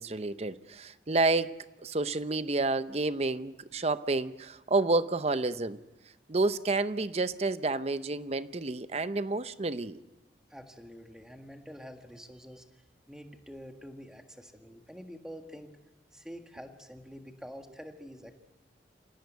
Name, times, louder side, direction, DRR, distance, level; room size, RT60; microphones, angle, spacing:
voice 1, 0.0-5.8 6.3-10.0, right 3 dB, 35° right, 0.7 m, -30 dB
voice 2, 10.5-15.8 16.1-18.3, equal, 5° right, 1.7 m, -47 dB
27.5 x 17.5 x 8.2 m
head